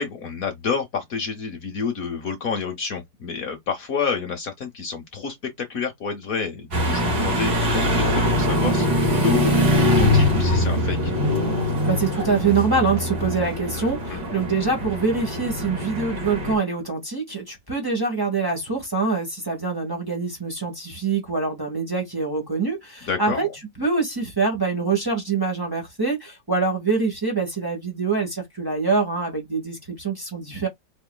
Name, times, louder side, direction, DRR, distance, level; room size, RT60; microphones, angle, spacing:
voice 1, 0.0-11.1 14.1-14.2 23.0-23.5, left 5 dB, 55° left, 1.3 m, -29 dB
sound 1, 6.7-16.5, equal, 85° right, 3.0 m, -22 dB
voice 2, 11.9-23.5 23.8-30.7, right 4 dB, 15° right, 1.6 m, -25 dB
4.6 x 4.2 x 2.2 m
omnidirectional pair, 1.9 m